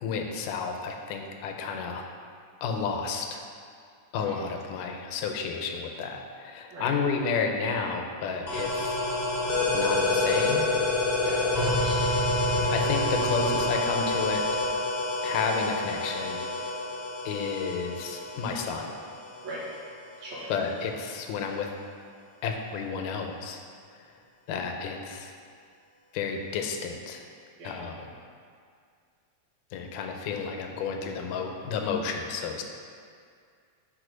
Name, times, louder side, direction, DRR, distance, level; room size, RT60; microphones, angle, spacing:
voice 1, 0.0-2.1 2.6-3.5 4.1-9.0 9.7-10.7 12.7-14.5 15.2-16.4 17.3-19.0 20.5-21.7 22.4-23.6 24.5-25.3 26.1-27.2 27.6-28.1 29.7-32.6, left 5 dB, 85° left, 3 dB, 2.1 m, -31 dB
sound 1, 8.5-19.9, left 2 dB, 60° left, 1.0 m, -27 dB
voice 2, 11.2-12.0 19.4-19.6 20.2-20.5 27.6-27.7, right 2 dB, 70° right, -6 dB, 2.4 m, -38 dB
4.7 x 4.7 x 5.0 m, 2.2 s
omnidirectional pair, 3.7 m